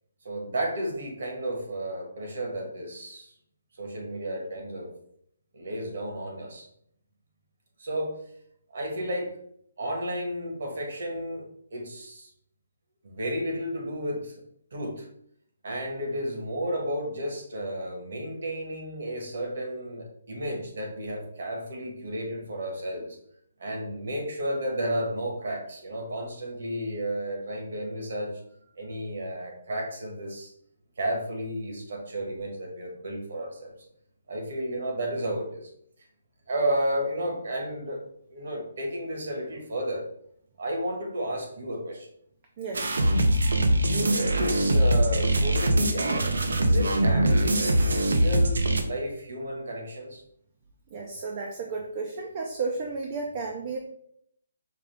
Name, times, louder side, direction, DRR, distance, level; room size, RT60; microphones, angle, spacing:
voice 1, 0.2-3.3 3.8-4.9 5.5-6.7 7.8-8.2 8.7-9.3 9.8-12.3 13.0-14.4 14.7-15.1 15.6-23.2 23.6-28.4 28.7-30.5 31.0-33.7 34.3-35.7 36.5-38.0 38.3-40.1 40.6-42.1 43.7-46.2 46.6-50.2, right 1 dB, 60° right, 1 dB, 1.4 m, -32 dB
voice 2, 42.6-42.9 50.9-53.8, right 4 dB, 30° right, 2 dB, 0.4 m, -33 dB
sound 1, 42.7-48.8, right 1 dB, 80° right, 0.6 m, -22 dB
4.9 x 2.3 x 3.5 m, 0.68 s
hypercardioid pair, 170°, 0 cm